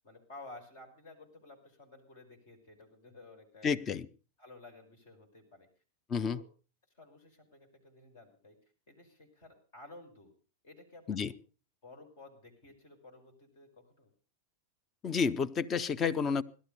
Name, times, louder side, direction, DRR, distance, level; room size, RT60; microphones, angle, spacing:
voice 1, 0.0-3.7 4.4-5.7 6.1-6.4 6.9-8.6 8.9-10.3 10.6-11.4 11.8-14.1, left 2 dB, 55° left, 4 dB, 5.5 m, -54 dB
voice 2, 3.6-4.1 6.1-6.4 11.1-11.3 15.0-16.4, left 6 dB, 25° left, 11 dB, 0.8 m, -30 dB
17.5 x 12.5 x 5.4 m, 0.37 s
figure-of-eight pair, 90°, 0 cm